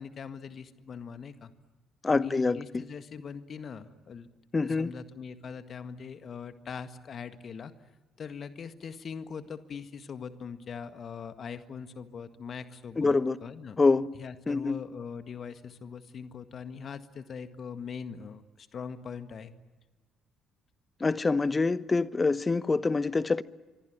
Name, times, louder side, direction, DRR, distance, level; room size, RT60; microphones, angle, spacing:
voice 1, 0.0-1.5 2.1-4.3 4.6-7.7 8.2-13.8 14.2-19.5, left 6 dB, 45° left, 1.8 m, -41 dB
voice 2, 2.0-2.8 4.5-4.9 13.0-13.4 13.8-14.1 14.5-14.8 21.0-23.4, left 3 dB, 25° left, 1.0 m, -25 dB
25.5 x 25.0 x 9.3 m
figure-of-eight pair, 45°, 0 cm